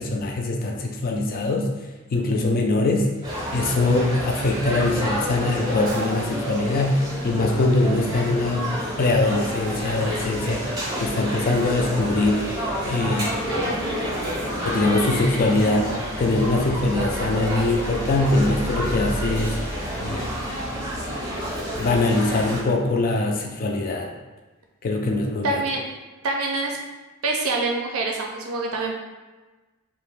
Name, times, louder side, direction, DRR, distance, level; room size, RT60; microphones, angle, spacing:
voice 1, 0.0-1.7 2.1-3.1 3.5-8.7 9.0-10.6 11.0-12.5 12.8-13.4 14.6-15.9 16.2-19.6 20.0-20.4 21.8-24.1 24.8-25.6, left 2 dB, 40° left, 2 dB, 0.3 m, -22 dB
sound 1, 3.2-22.6, equal, 20° right, 0.6 m, -29 dB
voice 2, 25.4-25.8 26.2-26.8 27.2-28.9, right 2 dB, 75° right, 1 dB, 0.5 m, -25 dB
2.4 x 2.1 x 3.2 m, 1.2 s
head